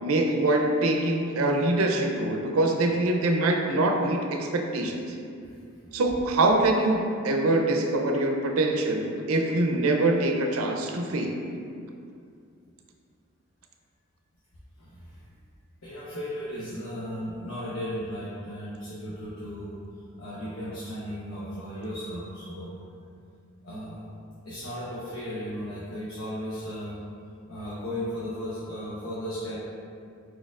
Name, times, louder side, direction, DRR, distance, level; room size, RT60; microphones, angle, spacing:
voice 1, 0.0-5.2 5.9-11.4, right 2 dB, 85° right, 2 dB, 0.5 m, -24 dB
voice 2, 14.8-15.4 15.8-22.8 23.6-24.1 24.4-27.0 27.5-29.5, equal, 85° left, -9 dB, 0.9 m, -36 dB
4.6 x 4.3 x 2.4 m, 2.4 s
head